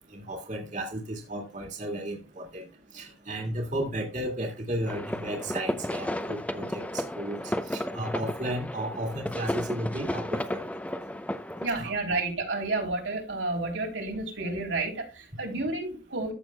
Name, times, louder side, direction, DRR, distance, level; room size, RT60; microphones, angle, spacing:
voice 1, 0.1-2.7 2.9-10.6 11.8-12.2, right 1 dB, 45° right, 1 dB, 1.9 m, -34 dB
sound 1, 4.9-11.7, left 1 dB, 10° left, 0.6 m, -33 dB
voice 2, 11.6-16.3, right 2 dB, 85° right, 0 dB, 3.3 m, -31 dB
14.0 x 6.8 x 2.2 m, 0.31 s
head